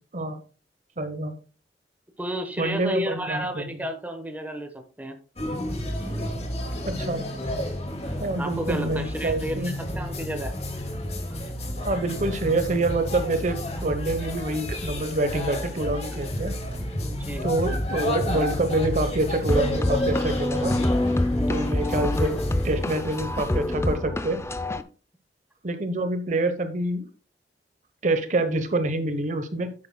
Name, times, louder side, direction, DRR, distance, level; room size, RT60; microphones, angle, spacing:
voice 1, 1.0-1.3 2.6-3.6 6.8-7.3 8.2-9.7 11.8-16.5 17.4-20.7 21.5-22.4 22.6-24.4 25.6-27.0 28.0-29.7, right 2 dB, 45° right, 9 dB, 1.0 m, -26 dB
voice 2, 2.2-5.2 8.1-10.5 17.0-17.4, equal, 10° right, 5 dB, 1.1 m, -32 dB
sound 1, 5.4-23.9, left 1 dB, 40° left, 2.1 m, -31 dB
sound 2, 19.5-24.8, left 1 dB, 15° left, 0.5 m, -26 dB
11.0 x 8.6 x 2.2 m, 0.36 s
head